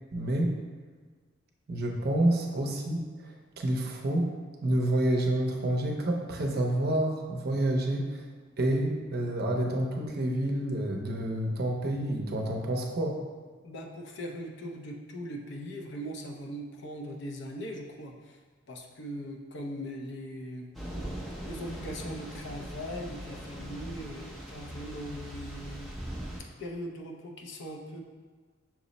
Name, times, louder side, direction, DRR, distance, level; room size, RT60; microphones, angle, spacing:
voice 1, 0.1-0.5 1.7-4.3 4.6-8.2 8.6-13.2, right 1 dB, 50° right, 1 dB, 0.6 m, -28 dB
voice 2, 13.6-18.4 18.7-20.7 21.1-25.9 26.6-28.0, equal, 60° left, 1 dB, 0.5 m, -40 dB
Thunder / Rain, 20.7-26.4, right 1 dB, ahead, 0.5 m, -40 dB
5.8 x 2.0 x 3.9 m, 1.5 s
head